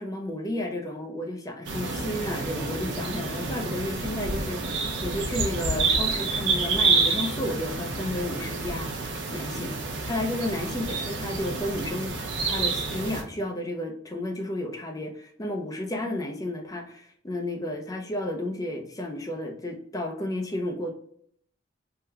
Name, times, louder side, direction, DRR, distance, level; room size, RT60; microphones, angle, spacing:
voice 1, 0.0-9.7 10.0-12.2 12.5-20.9, left 1 dB, 20° left, 3 dB, 0.5 m, -32 dB
sound 1, 1.6-13.2, right 4 dB, 70° right, 0.7 m, -28 dB
3.6 x 2.2 x 2.8 m, 0.64 s
head